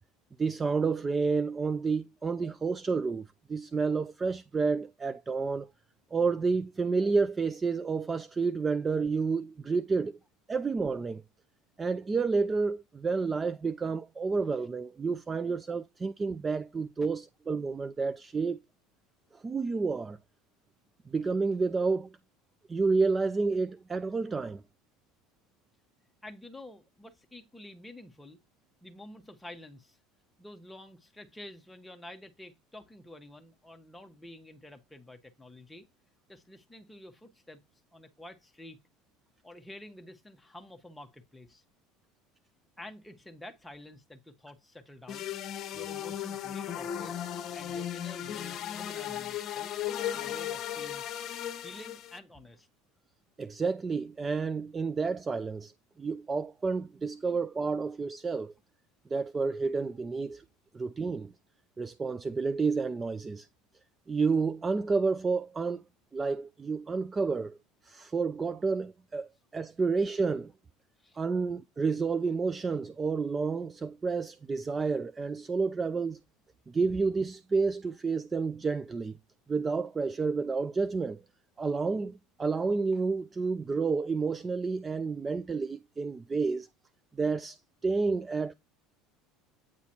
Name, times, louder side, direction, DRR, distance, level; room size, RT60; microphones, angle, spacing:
voice 1, 0.4-5.7 6.1-10.2 10.5-11.2 11.8-18.6 19.3-20.2 21.1-22.1 22.7-24.6 53.4-55.7 56.0-58.5 59.1-60.4 60.7-61.3 61.8-63.5 64.1-65.8 66.1-67.6 67.8-70.5 71.2-76.2 76.7-79.1 79.5-81.2 81.6-86.7 87.2-87.6 87.8-88.5, right 4 dB, 20° right, 0.3 m, -30 dB
voice 2, 26.2-28.4 28.8-30.0 30.4-35.9 36.3-37.6 37.9-38.8 39.4-41.6 42.8-45.3 45.7-49.8 50.1-51.0 51.6-52.7 71.0-71.2, left 1 dB, 5° left, 1.0 m, -49 dB
sound 1, 45.1-52.2, left 10 dB, 45° left, 0.9 m, -36 dB
8.6 x 4.0 x 2.8 m
supercardioid pair, 120°, 0 cm